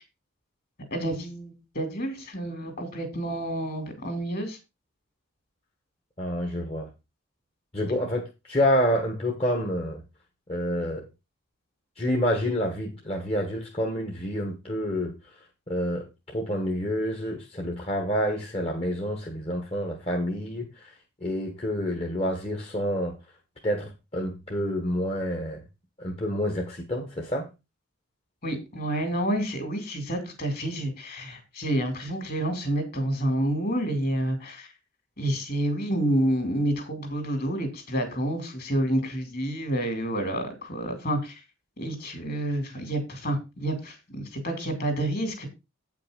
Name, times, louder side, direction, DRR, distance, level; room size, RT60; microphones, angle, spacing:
voice 1, 0.9-4.6 28.4-34.7 35.2-41.4 41.8-45.5, right 1 dB, 45° left, 2.9 m, -29 dB
voice 2, 6.2-6.9 7.7-10.0 10.5-11.1 12.0-15.1 15.7-20.9 21.2-23.2 23.6-25.6 26.0-27.5, equal, 30° left, 1.4 m, -28 dB
8.8 x 5.9 x 5.1 m
head